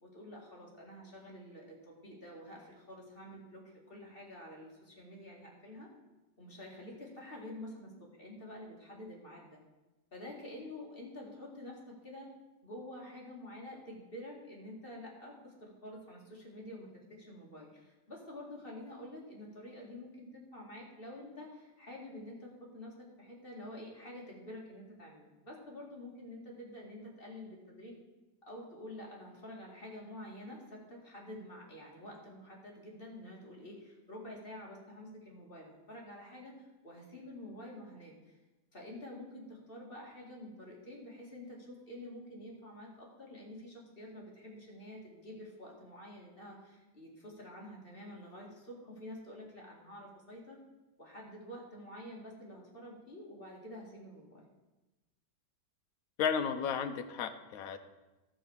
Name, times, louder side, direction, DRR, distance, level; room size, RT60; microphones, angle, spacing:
voice 1, 0.0-5.9 6.4-9.6 10.1-12.3 12.6-27.9 28.4-38.4 38.7-50.6 51.0-54.5, left 1 dB, 30° left, -3 dB, 2.3 m, -48 dB
voice 2, 56.2-57.8, left 7 dB, 60° left, 8 dB, 1.1 m, -33 dB
13.0 x 5.0 x 7.2 m, 1.1 s
omnidirectional pair, 1.9 m